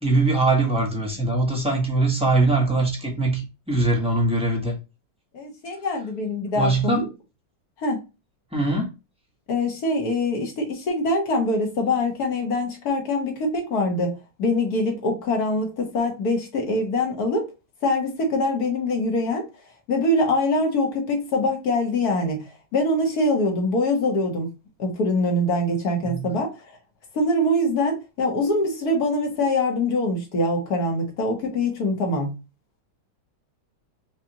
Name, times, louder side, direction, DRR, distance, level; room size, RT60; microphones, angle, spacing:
voice 1, 0.0-4.7 6.6-7.0 8.5-8.9 26.0-26.3, right 2 dB, 5° right, 1.0 m, -22 dB
voice 2, 5.3-7.1 7.8-8.0 9.5-17.5 17.8-19.5 19.9-22.4 22.7-24.5 24.8-26.5 27.1-32.3, left 1 dB, 60° left, 1.7 m, -23 dB
5.0 x 2.5 x 2.8 m
omnidirectional pair, 1.9 m